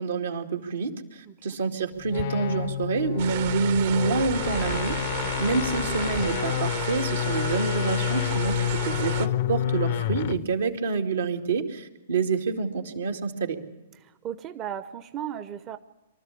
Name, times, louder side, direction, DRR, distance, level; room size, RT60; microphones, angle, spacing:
voice 1, 0.0-13.6, right 4 dB, 75° right, 4 dB, 2.3 m, -27 dB
voice 2, 1.3-1.6 5.2-5.3 13.9-15.8, right 10 dB, 30° right, 12 dB, 0.8 m, -36 dB
sound 1, 2.0-10.5, left 12 dB, 50° left, 0.6 m, -29 dB
sound 2, 3.2-9.3, right 11 dB, 55° right, 1.4 m, -33 dB
24.0 x 13.5 x 8.4 m, 1.0 s
hypercardioid pair, 120°, 0 cm